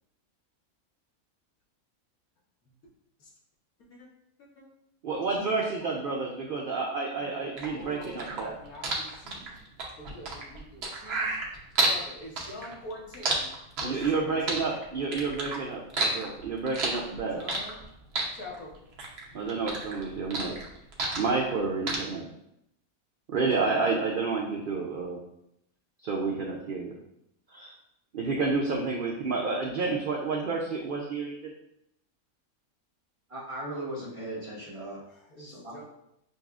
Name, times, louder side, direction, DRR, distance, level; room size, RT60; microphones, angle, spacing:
voice 1, 5.0-8.5 13.8-15.8 16.1-17.4 19.3-20.5 21.2-22.2 23.3-25.2 26.0-26.9 27.5-27.7 28.1-31.5, right 4 dB, 75° right, -1 dB, 0.4 m, -30 dB
voice 2, 7.1-9.6 10.0-11.4 11.8-13.5 13.8-14.6 17.3-17.8 18.3-18.7 35.1-35.8, left 1 dB, 85° left, -4 dB, 1.5 m, -45 dB
sound 1, 7.6-12.0 12.4-14.2 14.5-15.6 15.9-17.8 18.1-19.2 19.5-21.6 21.9-22.0, right 2 dB, 55° right, 0.9 m, -30 dB
voice 3, 33.3-35.0 35.4-35.8, right 1 dB, 25° right, -7 dB, 1.0 m, -38 dB
6.6 x 2.3 x 2.4 m, 0.79 s
omnidirectional pair, 1.5 m